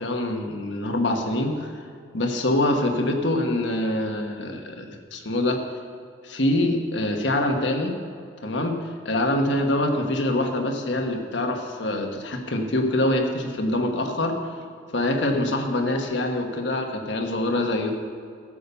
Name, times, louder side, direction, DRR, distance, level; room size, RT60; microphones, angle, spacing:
voice 1, 0.0-1.8 2.1-5.6 6.2-8.0 8.4-8.8 9.0-14.5 14.9-17.9, left 1 dB, 65° left, 3 dB, 1.3 m, -25 dB
14.5 x 7.0 x 6.9 m, 2.3 s
head